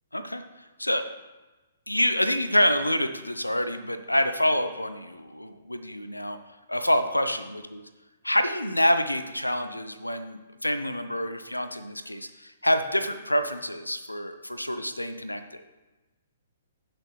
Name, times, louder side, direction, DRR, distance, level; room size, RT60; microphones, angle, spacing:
voice 1, 1.9-6.4 6.7-7.8 8.2-15.6, left 1 dB, 85° left, 9 dB, 0.7 m, -27 dB
17.0 x 6.0 x 3.2 m, 1.1 s
figure-of-eight pair, 120°, 0 cm